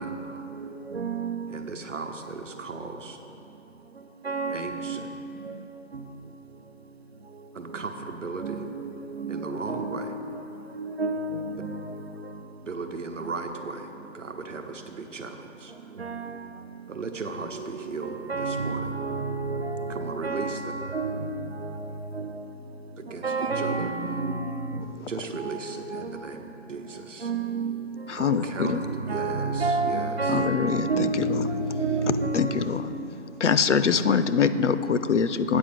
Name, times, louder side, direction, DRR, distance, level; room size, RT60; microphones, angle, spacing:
voice 1, 0.0-0.5 1.5-3.2 4.5-5.1 7.5-8.7 9.3-10.2 12.6-15.7 16.9-19.0 19.9-20.6 23.0-24.0 25.1-26.4 26.7-27.3 28.1-30.4, right 4 dB, 75° right, 1.0 m, -37 dB
voice 2, 0.6-1.4 4.2-5.0 5.4-5.5 5.9-6.0 8.4-10.4 10.7-12.0 16.0-16.3 17.5-22.4 23.2-24.8 25.4-25.6 25.9-26.1 27.2-27.8 28.6-32.7 33.8-33.9, right 3 dB, 55° right, 0.7 m, -30 dB
voice 3, 28.1-28.8 30.3-31.4 32.3-32.9 33.4-35.6, left 6 dB, 70° left, 0.5 m, -24 dB
8.2 x 5.3 x 7.7 m
figure-of-eight pair, 175°, 38 cm